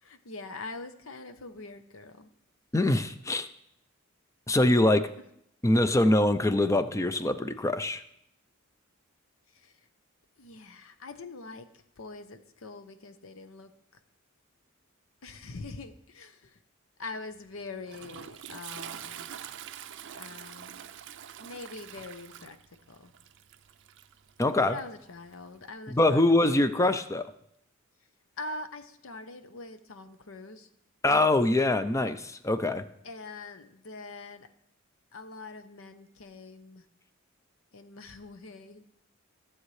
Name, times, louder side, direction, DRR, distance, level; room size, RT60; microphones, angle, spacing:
voice 1, 0.0-2.3 4.6-4.9 9.5-9.9 10.4-13.7 15.2-16.6 17.0-19.3 20.1-20.9 21.4-22.6 22.9-23.1 24.7-26.3 28.4-30.7 33.0-34.5 35.1-36.8 37.7-38.8, left 3 dB, 75° left, 10 dB, 0.8 m, -44 dB
voice 2, 2.7-3.5 4.5-5.1 5.6-8.0 24.4-24.8 25.9-27.3 31.0-32.8, left 1 dB, 15° left, 11 dB, 0.5 m, -24 dB
Toilet flush, 17.3-25.7, right 10 dB, 60° right, 0.4 m, -45 dB
15.0 x 7.3 x 3.2 m, 0.76 s
head